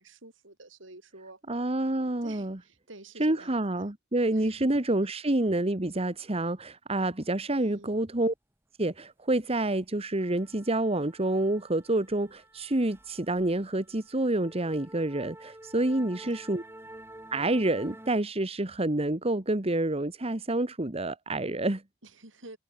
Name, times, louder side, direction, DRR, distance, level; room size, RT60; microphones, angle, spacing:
voice 1, 0.0-1.4 2.2-3.9 4.3-4.7 7.6-7.9 15.9-16.4 22.0-22.6, right 2 dB, 80° right, 7.4 m, -49 dB
voice 2, 1.5-2.6 3.2-8.3 8.8-16.6 17.3-21.8, right 1 dB, 30° right, 1.5 m, -28 dB
sound 1, 9.3-9.5 9.8-18.1, right 1 dB, 10° right, 4.1 m, -50 dB
head